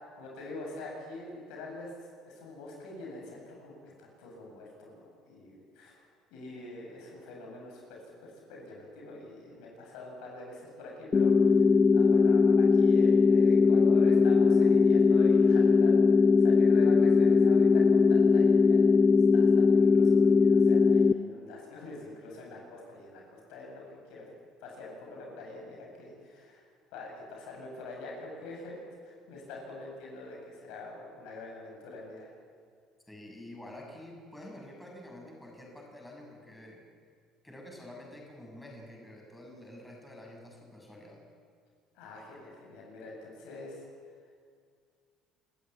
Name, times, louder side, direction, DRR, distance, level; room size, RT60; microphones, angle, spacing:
voice 1, 0.1-1.9 2.2-6.0 6.3-18.9 19.3-23.8 24.1-24.3 24.6-26.7 26.9-32.3 41.9-43.8, left 2 dB, 80° left, -1 dB, 7.9 m, -45 dB
sound 1, 11.1-21.1, left 5 dB, 30° left, 0.7 m, -21 dB
voice 2, 33.1-36.8 37.4-41.2, left 1 dB, 10° left, -1 dB, 6.6 m, -48 dB
27.0 x 14.5 x 9.2 m, 2.1 s
supercardioid pair, 100°, 0 cm